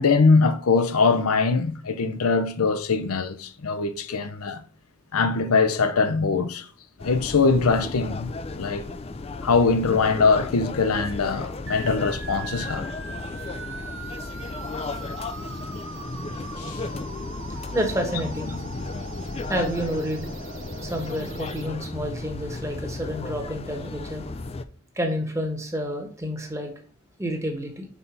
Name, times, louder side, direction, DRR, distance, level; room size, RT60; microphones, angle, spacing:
voice 1, 0.0-4.6 5.1-6.7 7.0-8.9 9.4-12.9 16.6-16.8, left 4 dB, 85° left, 0.7 m, -22 dB
sound 1, 7.0-24.6, left 3 dB, 25° left, 0.3 m, -34 dB
sound 2, 11.7-21.7, right 5 dB, 55° right, 0.7 m, -41 dB
voice 2, 17.7-18.6 19.5-20.3 20.8-24.2 25.0-26.7 27.2-27.9, equal, 15° right, 1.2 m, -29 dB
5.7 x 4.1 x 5.8 m
head